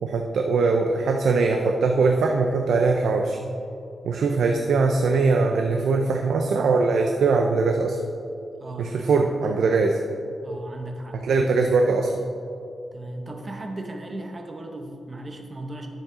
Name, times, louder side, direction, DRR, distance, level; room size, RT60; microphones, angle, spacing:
voice 1, 0.0-3.4 4.0-8.0 8.8-10.0 11.2-12.1, right 4 dB, 85° right, 3 dB, 0.5 m, -21 dB
voice 2, 8.6-9.2 10.4-11.2 12.9-15.9, right 1 dB, 30° right, 3 dB, 0.9 m, -36 dB
10.0 x 7.3 x 3.8 m, 2.6 s
wide cardioid pair, 140°, 0 cm